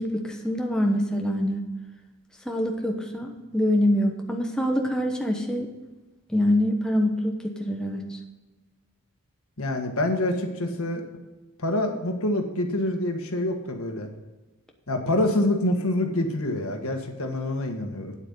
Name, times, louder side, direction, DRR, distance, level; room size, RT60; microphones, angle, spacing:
voice 1, 0.0-1.6 2.5-5.7 6.3-8.0, left 1 dB, 5° left, 1 dB, 1.1 m, -25 dB
voice 2, 9.6-11.0 11.6-14.1 14.9-18.1, left 1 dB, 80° left, 4 dB, 1.6 m, -26 dB
9.1 x 8.4 x 5.5 m, 1.2 s
head